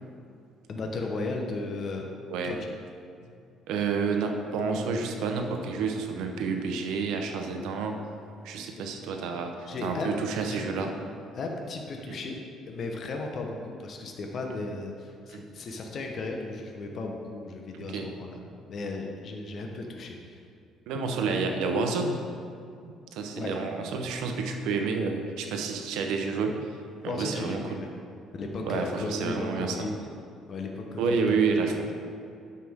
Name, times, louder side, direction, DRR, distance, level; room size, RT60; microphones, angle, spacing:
voice 1, 0.7-2.7 8.8-8.9 9.7-10.1 10.5-10.9 11.3-12.4 12.7-18.4 18.7-20.4 23.3-23.5 27.0-27.9 28.3-30.1 30.5-31.4, left 3 dB, 45° left, 2 dB, 0.9 m, -35 dB
voice 2, 3.7-8.0 8.4-10.9 12.1-12.2 15.3-15.4 17.7-18.1 20.9-22.3 22.8-26.6 27.0-27.8 28.6-29.9 31.0-31.9, right 4 dB, 85° right, 4 dB, 0.8 m, -29 dB
9.6 x 6.7 x 3.6 m, 2.5 s
cardioid pair, 120°, 0 cm